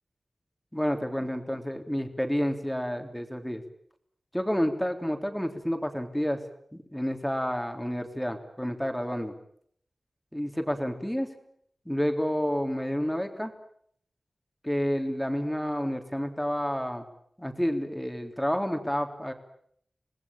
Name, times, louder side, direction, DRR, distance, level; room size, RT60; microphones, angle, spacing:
voice 1, 0.7-3.6 4.3-6.4 6.7-9.3 10.3-11.3 11.9-13.5 14.6-17.1 17.4-19.3, equal, 5° left, 5 dB, 3.5 m, -29 dB
26.5 x 19.5 x 8.9 m, 0.65 s
wide cardioid pair, 70°, 0 cm